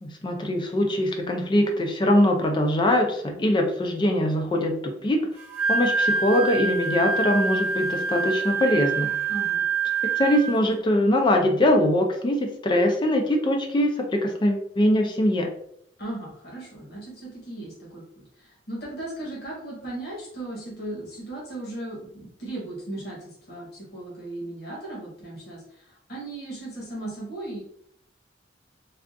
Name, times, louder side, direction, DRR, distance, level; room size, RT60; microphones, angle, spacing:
voice 1, 0.0-5.3 5.7-9.1 10.0-15.5, left 1 dB, 25° left, 3 dB, 0.4 m, -22 dB
Wind instrument woodwind instrument, 5.4-10.7, right 4 dB, 10° right, 0.9 m, -26 dB
voice 2, 9.3-9.6 16.0-18.0 18.4-27.6, right 1 dB, 60° left, -4 dB, 1.3 m, -37 dB
3.4 x 2.4 x 2.5 m, 0.69 s
head